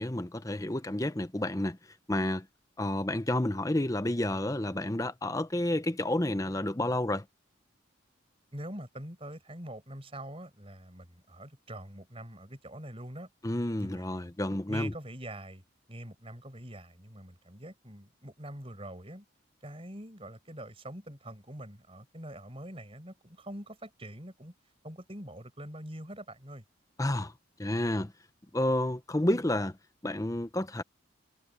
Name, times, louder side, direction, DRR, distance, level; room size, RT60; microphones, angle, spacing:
voice 1, 0.0-1.8 2.1-2.5 2.8-7.2 13.4-14.9 27.0-27.3 27.6-28.1 28.5-29.8 30.0-30.8, left 1 dB, 15° left, 0.7 m, -30 dB
voice 2, 8.5-13.3 13.8-14.3 14.7-15.6 15.9-19.3 19.6-24.5 24.8-26.6, right 1 dB, 30° right, 5.4 m, -44 dB
head